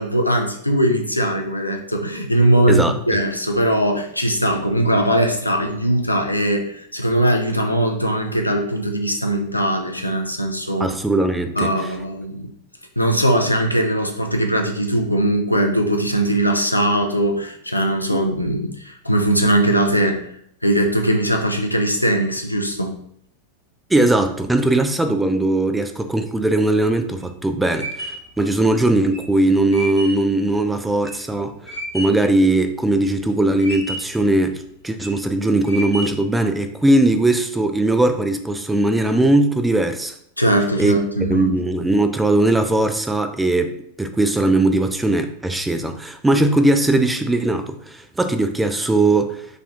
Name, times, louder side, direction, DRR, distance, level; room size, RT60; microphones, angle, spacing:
voice 1, 0.0-10.9 11.6-12.5 13.0-20.2 20.6-23.0 40.4-41.5, right 1 dB, 85° left, 3 dB, 0.5 m, -20 dB
voice 2, 10.8-11.7 18.1-18.2 23.9-40.1 40.8-49.5, right 2 dB, 5° right, 8 dB, 0.4 m, -19 dB
sound 1, 27.2-32.3 32.7-33.3 33.6-34.2 34.8-35.2 35.6-36.3, right 1 dB, 65° left, 0.9 m, -32 dB
3.3 x 2.3 x 3.9 m, 0.68 s
figure-of-eight pair, 90°, 0 cm